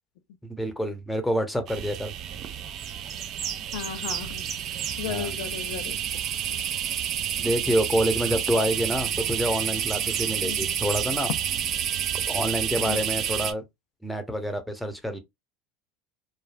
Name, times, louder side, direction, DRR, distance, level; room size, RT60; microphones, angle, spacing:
voice 1, 0.4-2.1 5.1-5.3 7.4-11.3 12.3-13.6 14.0-15.2, equal, 5° left, 0.9 m, -27 dB
sound 1, 1.7-13.5, right 9 dB, 45° right, 0.5 m, -29 dB
voice 2, 3.7-4.4 5.0-6.0 6.4-6.6 8.5-8.7 10.4-10.7 12.8-13.0, left 10 dB, 65° left, 0.4 m, -35 dB
3.1 x 2.3 x 2.3 m
figure-of-eight pair, 75°, 0 cm